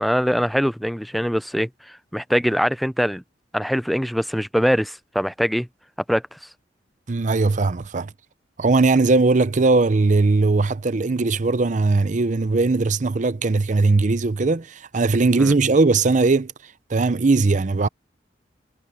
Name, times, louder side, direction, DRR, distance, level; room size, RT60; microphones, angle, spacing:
voice 1, 0.0-3.2 3.5-5.7 6.1-6.4 15.4-15.5, equal, ahead, 0.4 m, -23 dB
voice 2, 7.1-8.1 8.6-16.5 16.9-17.9, right 3 dB, 45° right, 0.6 m, -19 dB
head